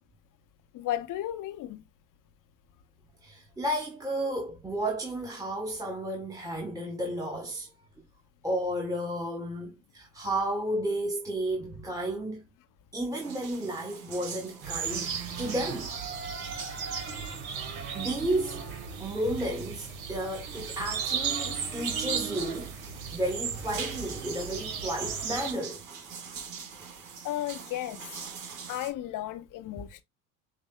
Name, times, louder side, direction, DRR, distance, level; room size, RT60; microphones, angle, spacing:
voice 1, 0.7-1.8 27.2-28.0 28.7-30.0, left 13 dB, 50° left, 0.7 m, -34 dB
voice 2, 3.2-7.7 8.4-12.4 12.9-15.9 16.7-16.9 17.9-18.7 19.0-22.7 23.1-25.8, right 1 dB, 10° right, 1.2 m, -32 dB
sound 1, 13.1-28.9, right 6 dB, 60° right, 2.2 m, -45 dB
sound 2, 14.6-25.5, right 6 dB, 80° right, 1.8 m, -35 dB
6.4 x 2.7 x 2.3 m
hypercardioid pair, 80°, 41 cm